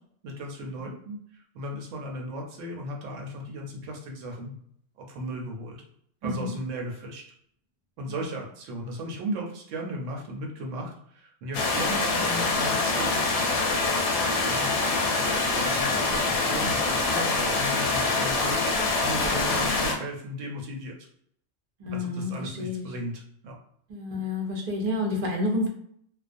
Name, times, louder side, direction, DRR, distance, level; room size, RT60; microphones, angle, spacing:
voice 1, 0.2-4.6 5.0-5.8 6.2-7.2 8.0-13.3 14.4-14.7 15.1-18.6 19.0-21.0 21.9-23.6, equal, 75° right, 1 dB, 0.9 m, -36 dB
voice 2, 6.2-6.5 8.1-8.2 11.6-11.8 21.8-22.9 23.9-25.7, left 2 dB, 50° right, 0 dB, 0.5 m, -30 dB
sound 1, 11.5-19.9, left 3 dB, 70° left, 0.8 m, -25 dB
2.4 x 2.1 x 2.5 m, 0.66 s
omnidirectional pair, 1.4 m